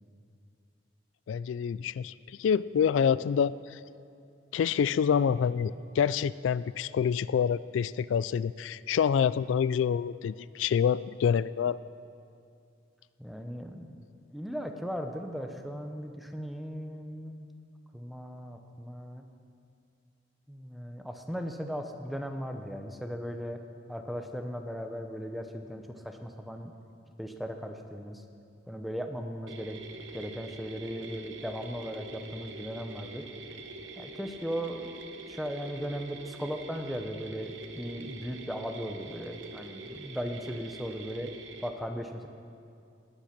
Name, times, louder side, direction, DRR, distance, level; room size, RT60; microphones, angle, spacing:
voice 1, 1.3-2.1 2.4-3.8 4.5-11.8, left 7 dB, 90° left, 19 dB, 0.3 m, -27 dB
voice 2, 13.2-14.0 14.3-17.5 17.9-19.2 20.5-23.6 23.9-26.7 27.2-28.2 28.7-29.8 30.1-33.2 34.0-34.9 35.3-41.3 41.6-42.3, equal, ahead, 5 dB, 0.8 m, -37 dB
sound 1, 29.5-41.7, right 3 dB, 85° right, 1.0 m, -45 dB
19.0 x 8.9 x 5.9 m, 2.5 s
head